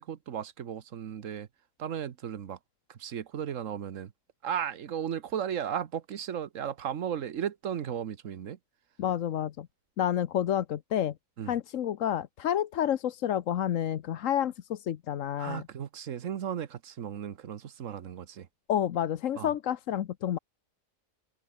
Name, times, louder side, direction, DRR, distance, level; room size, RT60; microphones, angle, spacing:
voice 1, 0.0-1.5 1.8-2.6 2.9-4.1 4.4-8.6 11.4-11.6 15.4-18.5 19.4-19.5, right 9 dB, 75° right, 1.4 m, -35 dB
voice 2, 9.0-9.7 10.0-11.1 11.5-15.6 18.7-20.4, left 10 dB, 75° left, 1.2 m, -29 dB
omnidirectional pair, 1.4 m